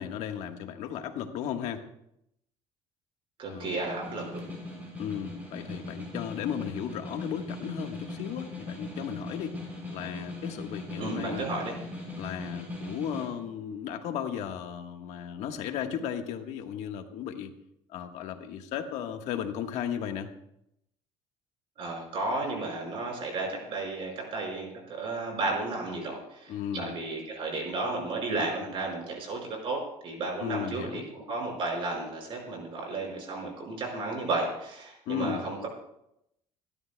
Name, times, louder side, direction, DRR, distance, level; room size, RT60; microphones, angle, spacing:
voice 1, 0.0-1.8 3.5-3.8 5.0-9.6 9.9-11.5 12.2-17.5 17.9-20.3 26.5-27.0 30.4-31.1 35.1-35.5, left 9 dB, 70° left, 5 dB, 1.5 m, -35 dB
voice 2, 3.4-4.5 11.0-11.7 21.8-35.7, right 3 dB, 45° right, 0 dB, 5.3 m, -33 dB
Snare drum, 3.7-13.3, left 2 dB, 10° right, 6.3 m, -40 dB
28.5 x 12.5 x 2.3 m, 0.78 s
cardioid pair, 150°, 12 cm